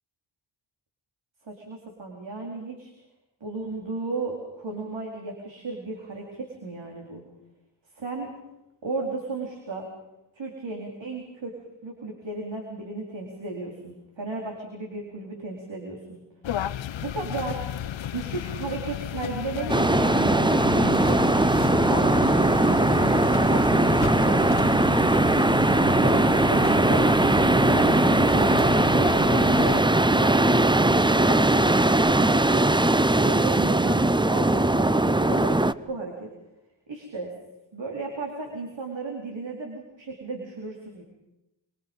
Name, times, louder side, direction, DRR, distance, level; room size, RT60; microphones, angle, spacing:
voice 1, 1.4-2.9 3.4-7.2 7.9-8.3 8.8-9.9 10.3-11.5 11.8-16.2 17.0-17.6 18.1-21.3 21.9-25.0 26.0-27.1 27.4-28.5 28.9-32.7 33.1-35.6 35.9-36.3 36.9-37.3 37.7-41.0, right 3 dB, 75° right, 0 dB, 4.5 m, -34 dB
sound 1, 16.4-29.8, left 10 dB, 80° left, 0.8 m, -33 dB
sound 2, 19.7-35.7, right 2 dB, 10° right, 0.7 m, -20 dB
27.0 x 25.5 x 5.5 m, 0.91 s
cardioid pair, 50°, 45 cm